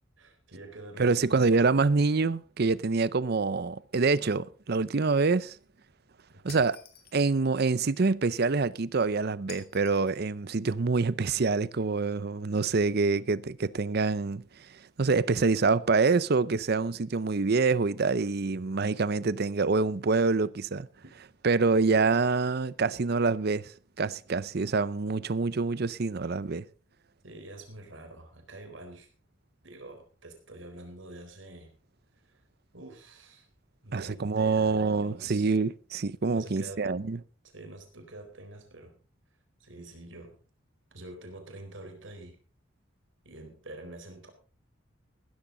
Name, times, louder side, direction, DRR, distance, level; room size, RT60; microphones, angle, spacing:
voice 1, 0.2-1.8 6.3-6.6 18.5-18.8 21.0-21.1 27.2-29.1 29.6-31.7 32.2-32.4 32.7-33.5 33.8-35.5 36.3-36.9 37.5-39.0 39.6-40.4 40.9-42.4 43.2-44.3, right 2 dB, 65° right, 4.2 m, -46 dB
voice 2, 1.0-5.6 6.4-6.8 7.1-14.4 15.0-20.9 21.4-23.7 24.0-26.7 33.9-37.2, right 4 dB, 50° right, 0.6 m, -26 dB
Shatter, 6.5-7.3 9.5-10.2, left 8 dB, 50° left, 2.5 m, -49 dB
16.0 x 13.5 x 3.9 m
head